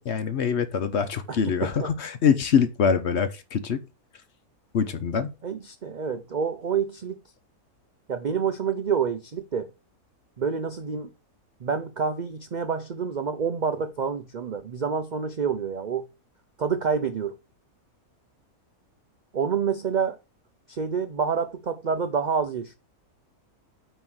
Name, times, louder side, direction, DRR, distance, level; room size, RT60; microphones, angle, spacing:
voice 1, 0.0-3.8 4.7-5.3, left 6 dB, 55° left, 1.0 m, -24 dB
voice 2, 1.3-1.9 5.4-7.2 8.1-9.7 10.4-11.1 11.6-16.1 16.6-17.4 19.3-20.2 20.7-22.8, right 6 dB, 65° right, 0.4 m, -28 dB
9.0 x 3.1 x 6.1 m
omnidirectional pair, 1.5 m